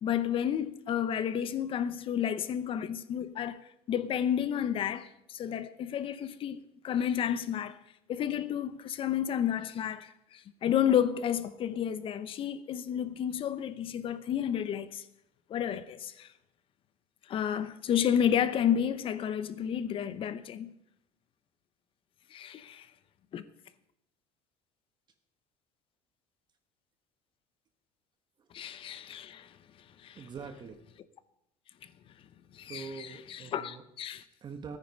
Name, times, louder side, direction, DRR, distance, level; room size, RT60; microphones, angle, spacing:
voice 1, 0.0-3.6 3.9-7.8 8.1-15.0 15.5-16.3 17.3-20.7 22.3-22.9 23.3-23.4 28.5-29.5 30.0-30.2 32.5-34.2, left 9 dB, 40° left, 0.8 m, -31 dB
voice 2, 30.1-30.9 32.6-33.8 34.4-34.8, right 5 dB, 35° right, 1.1 m, -43 dB
14.0 x 9.4 x 5.3 m
cardioid pair, 130°, 14 cm